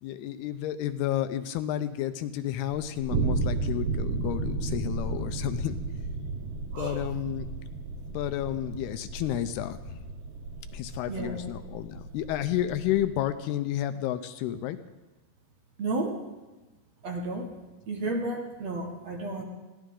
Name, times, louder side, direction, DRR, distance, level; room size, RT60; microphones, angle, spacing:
voice 1, 0.0-5.8 6.8-7.5 8.1-9.8 10.7-14.8, left 12 dB, 80° left, 10 dB, 2.5 m, -31 dB
sound 1, 2.7-13.2, right 3 dB, 75° right, 1.4 m, -34 dB
voice 2, 6.7-7.1 11.1-11.4 15.8-16.2 17.0-17.5 17.9-19.4, right 2 dB, 55° right, 1 dB, 2.1 m, -32 dB
22.0 x 16.5 x 3.8 m, 1.1 s
omnidirectional pair, 4.9 m